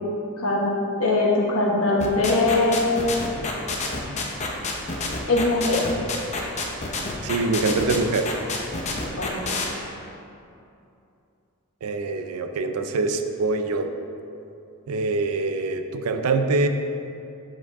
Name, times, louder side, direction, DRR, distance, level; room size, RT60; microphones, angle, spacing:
voice 1, 0.4-2.9 5.3-5.9 9.1-9.6, left 2 dB, 65° left, -2 dB, 1.1 m, -22 dB
sound 1, 2.0-9.7, left 3 dB, 30° left, 0.6 m, -28 dB
voice 2, 7.2-8.3 11.8-13.9 14.9-16.7, right 3 dB, 80° right, 7 dB, 0.4 m, -24 dB
7.6 x 4.6 x 3.6 m, 2.7 s
head